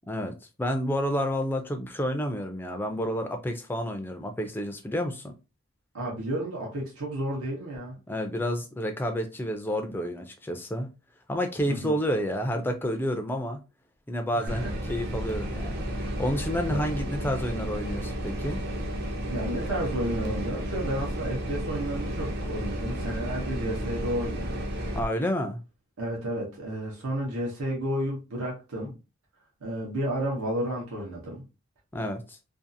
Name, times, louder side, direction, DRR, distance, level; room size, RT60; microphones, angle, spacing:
voice 1, 0.1-5.3 8.1-10.9 11.3-13.6 14.1-18.6 24.9-25.6 31.9-32.4, equal, 10° left, 0.3 m, -30 dB
voice 2, 5.9-8.0 11.7-12.0 14.3-14.7 16.7-16.8 19.2-24.7 26.0-28.9 29.6-31.4, right 1 dB, 85° right, 0.9 m, -32 dB
sound 1, 14.5-25.0, equal, 45° right, 0.6 m, -32 dB
2.6 x 2.4 x 2.6 m
head